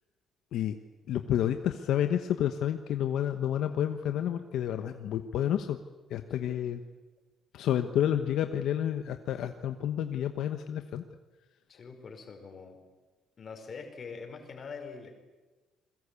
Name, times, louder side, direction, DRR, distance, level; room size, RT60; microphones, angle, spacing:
voice 1, 1.1-5.8 6.1-6.8 7.5-11.0, left 10 dB, 65° left, 7 dB, 1.2 m, -30 dB
voice 2, 11.7-12.8 13.4-15.1, left 5 dB, 30° left, 5 dB, 4.9 m, -44 dB
28.5 x 22.0 x 8.4 m, 1.2 s
cardioid pair, 165°, 0 cm